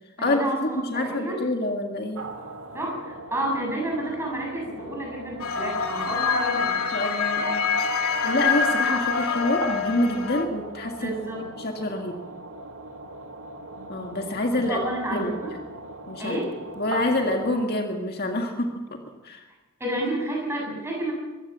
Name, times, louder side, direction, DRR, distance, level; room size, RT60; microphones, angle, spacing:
voice 1, 0.2-1.4 2.7-6.8 11.0-11.4 14.6-15.5 16.2-16.5 19.8-21.1, right 1 dB, 10° right, -1 dB, 7.8 m, -30 dB
voice 2, 0.8-2.2 6.9-7.7 8.0-11.1 11.6-12.2 13.9-14.8 15.1-15.3 16.1-16.4 16.8-18.7 19.2-19.4, left 1 dB, 45° left, 3 dB, 1.9 m, -27 dB
sound 1, 2.1-17.7, right 2 dB, 70° right, 2.1 m, -40 dB
sound 2, 5.4-10.4, left 5 dB, 85° left, 3.0 m, -25 dB
23.5 x 16.0 x 7.5 m, 1.2 s
head